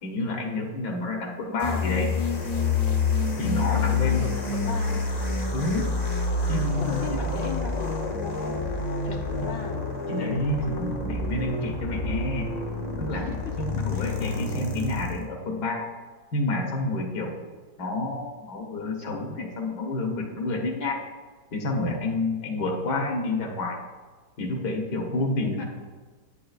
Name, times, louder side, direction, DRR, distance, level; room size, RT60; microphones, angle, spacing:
voice 1, 0.0-2.1 3.4-4.3 5.5-6.0 6.5-7.3 10.1-12.5 13.0-13.3 13.6-15.9 16.3-17.4 17.8-21.0 21.5-23.8 24.4-25.6, left 2 dB, 65° left, 0 dB, 1.8 m, -29 dB
sound 1, 1.6-15.2, left 3 dB, 35° left, 0.6 m, -28 dB
voice 2, 3.6-5.0 6.8-8.7 9.0-9.7 13.1-13.5 13.9-14.1 25.1-25.6, left 5 dB, 85° left, -2 dB, 1.6 m, -37 dB
9.7 x 9.4 x 2.4 m, 1.4 s
omnidirectional pair, 1.9 m